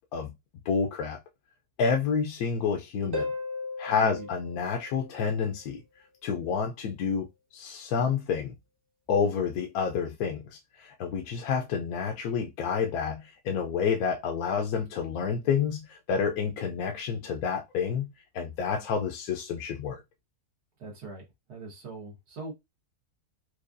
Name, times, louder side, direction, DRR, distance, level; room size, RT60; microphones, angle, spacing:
voice 1, 0.7-1.2 1.8-3.3 3.8-5.8 6.2-8.5 9.1-20.0, left 6 dB, 75° left, 1.1 m, -29 dB
Harp, 3.1-5.6 9.1-9.2, left 3 dB, 20° right, 0.6 m, -36 dB
voice 2, 3.8-4.3 20.8-21.2 21.5-22.5, right 3 dB, 85° right, 1.7 m, -41 dB
4.6 x 2.4 x 2.5 m
omnidirectional pair, 1.6 m